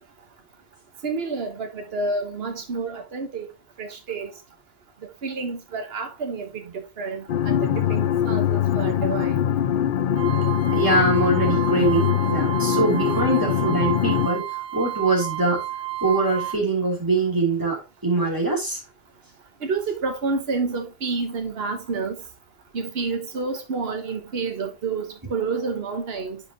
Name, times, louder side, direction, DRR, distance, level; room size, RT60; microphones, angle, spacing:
voice 1, 1.0-3.5 3.8-4.3 5.2-9.4 19.6-22.1 22.7-26.4, right 4 dB, 75° right, 1.4 m, -29 dB
sound 1, 7.3-14.3, left 9 dB, 65° left, 0.7 m, -22 dB
sound 2, 10.1-16.5, right 14 dB, 55° right, 0.7 m, -31 dB
voice 2, 10.7-14.5 14.7-15.6 16.0-18.8, right 2 dB, 20° right, 3.0 m, -23 dB
9.8 x 5.3 x 2.9 m
omnidirectional pair, 1.0 m